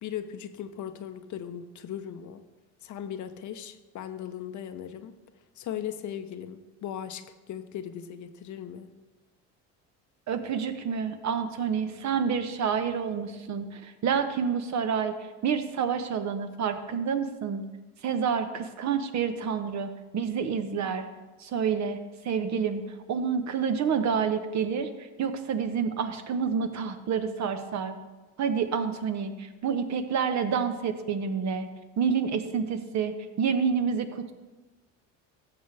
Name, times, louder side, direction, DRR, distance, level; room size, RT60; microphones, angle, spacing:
voice 1, 0.0-2.4 2.8-5.2 5.6-8.9, left 9 dB, 50° left, 9 dB, 0.8 m, -38 dB
voice 2, 10.3-15.1 15.4-17.6 18.0-21.0 21.4-22.0 22.2-22.8 23.1-24.9 25.2-28.0 28.4-31.7 32.0-34.3, right 6 dB, 50° right, 8 dB, 1.0 m, -28 dB
13.5 x 6.8 x 3.4 m, 1.2 s
hypercardioid pair, 65°, 37 cm